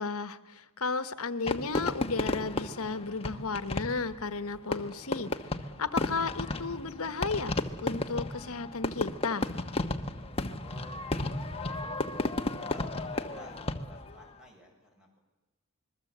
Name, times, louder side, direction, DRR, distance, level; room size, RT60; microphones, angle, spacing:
voice 1, 0.0-5.3 5.8-9.5, left 4 dB, 75° left, 12 dB, 1.2 m, -34 dB
Fireworks, 1.5-14.2, left 2 dB, 25° left, 1.2 m, -33 dB
voice 2, 10.6-11.3 11.7-12.1 12.5-15.2, equal, 5° right, 0 dB, 7.2 m, -52 dB
26.5 x 22.0 x 8.1 m, 1.1 s
head